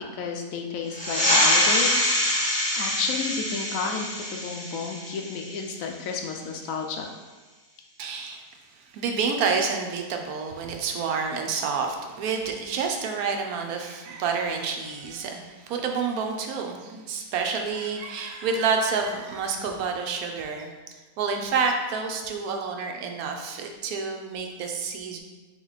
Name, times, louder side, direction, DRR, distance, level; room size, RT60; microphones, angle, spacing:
voice 1, 0.1-2.5 2.8-7.1, left 5 dB, 70° left, 2 dB, 1.0 m, -32 dB
sound 1, 0.9-6.0, left 1 dB, 5° left, 0.9 m, -25 dB
voice 2, 8.0-25.2, right 5 dB, 85° right, 3 dB, 1.1 m, -29 dB
3.9 x 3.0 x 4.0 m, 1.3 s
omnidirectional pair, 1.5 m